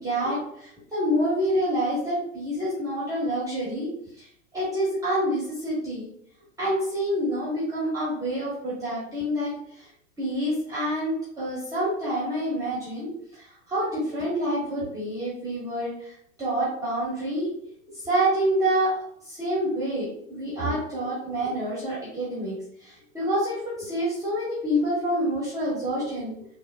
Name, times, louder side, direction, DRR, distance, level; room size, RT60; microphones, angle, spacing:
voice 1, 0.0-3.9 4.2-4.3 4.5-6.1 6.6-9.9 10.2-16.1 16.4-17.5 18.0-19.0 19.3-22.6 22.8-26.3, equal, 10° right, -9 dB, 0.8 m, -27 dB
3.1 x 2.0 x 2.2 m, 0.69 s
figure-of-eight pair, 95°, 43 cm